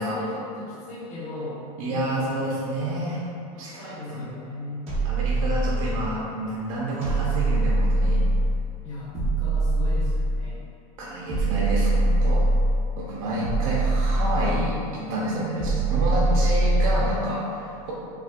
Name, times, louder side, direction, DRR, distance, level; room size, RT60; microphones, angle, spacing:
voice 1, 0.0-1.6 1.9-2.4 2.9-3.0 3.5-4.8 8.8-10.6 15.5-15.8 16.2-16.5, left 2 dB, 35° left, -8 dB, 1.1 m, -37 dB
voice 2, 1.8-3.2 3.6-4.3 5.0-8.2 11.0-12.5 13.0-17.9, right 1 dB, 65° right, -5 dB, 0.7 m, -29 dB
sound 1, 4.9-6.2 7.0-8.6 9.1-10.6 11.3-12.9 13.4-14.8 15.6-17.2, right 2 dB, 30° right, 1.1 m, -23 dB
5.6 x 2.2 x 2.4 m, 2.7 s
supercardioid pair, 155°, 19 cm